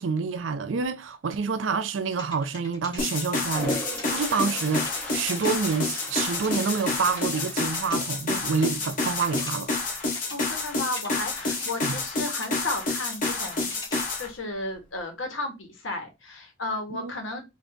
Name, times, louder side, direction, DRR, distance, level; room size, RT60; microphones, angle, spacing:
voice 1, 0.0-9.7 11.8-12.0 16.9-17.1, right 5 dB, 65° right, 0.5 m, -28 dB
sound 1, 2.1-3.0 3.4-4.1 4.4-4.6 4.9-8.0 8.3-9.5 9.9-10.5 11.0-11.9 12.3-14.0, left 1 dB, 25° left, 1.8 m, -43 dB
sound 2, 3.0-14.3, left 3 dB, 45° left, 1.3 m, -29 dB
Toilet flush, 3.4-8.6 9.0-9.4 13.9-14.0 14.2-15.0, equal, 10° left, 1.3 m, -38 dB
voice 2, 10.3-17.4, left 2 dB, 75° left, 1.4 m, -34 dB
3.9 x 2.7 x 3.4 m
head